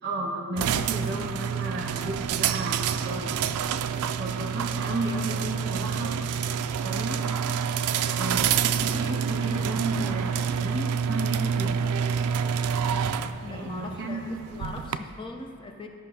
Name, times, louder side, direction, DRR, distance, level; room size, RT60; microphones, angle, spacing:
voice 1, 0.0-3.6 4.2-7.2 8.1-11.9 13.5-14.3, right 2 dB, 50° right, 0 dB, 1.2 m, -33 dB
sound 1, 0.6-15.0, right 7 dB, 75° right, 0.3 m, -28 dB
voice 2, 13.4-15.9, left 2 dB, 20° left, 3 dB, 0.5 m, -40 dB
13.5 x 5.5 x 2.7 m, 2.8 s
head